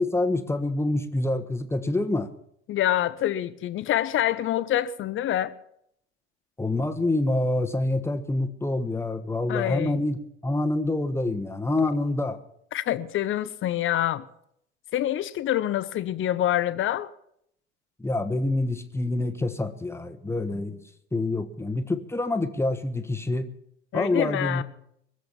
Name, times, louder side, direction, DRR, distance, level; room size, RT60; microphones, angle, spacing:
voice 1, 0.0-2.3 6.6-12.4 18.0-20.8 21.1-23.5 23.9-24.6, left 2 dB, 5° left, 1.2 m, -26 dB
voice 2, 2.7-5.5 9.5-10.0 12.7-14.2 14.9-17.1 23.9-24.6, left 12 dB, 35° left, 0.9 m, -26 dB
22.5 x 7.7 x 7.0 m
figure-of-eight pair, 65°, 35 cm